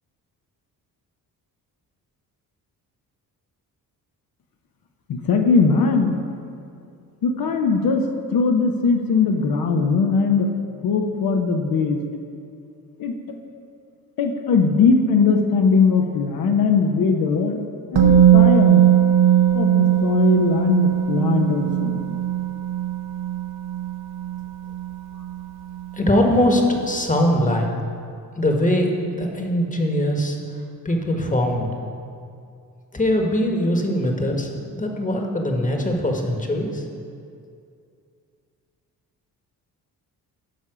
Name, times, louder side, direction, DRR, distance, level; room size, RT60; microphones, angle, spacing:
voice 1, 5.1-6.2 7.2-10.5 10.8-12.0 13.0-13.2 14.2-17.6 17.9-18.8 19.5-22.0, left 4 dB, 65° left, 3 dB, 0.9 m, -20 dB
Musical instrument, 18.0-25.9 26.1-26.3, right 10 dB, 70° right, 1.1 m, -19 dB
voice 2, 25.9-27.7 28.4-30.4 30.8-31.7 32.9-36.8, left 1 dB, 20° left, 2 dB, 1.3 m, -21 dB
9.3 x 5.5 x 5.0 m, 2.4 s
supercardioid pair, 65°, 39 cm